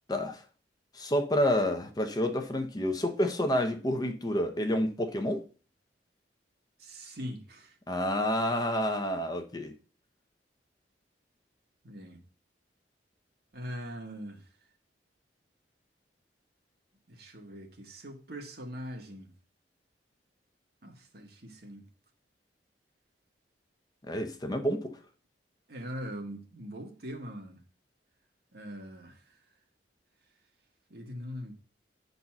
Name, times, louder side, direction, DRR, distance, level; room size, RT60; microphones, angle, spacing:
voice 1, 0.1-0.4 1.0-5.4 7.9-9.7 24.1-25.0, left 1 dB, 20° left, 0.8 m, -29 dB
voice 2, 6.8-7.8 11.8-12.2 13.5-14.4 17.1-19.3 20.8-21.9 25.7-27.6 28.5-29.4 30.9-31.5, equal, 60° right, 1.6 m, -42 dB
10.0 x 4.1 x 5.9 m
head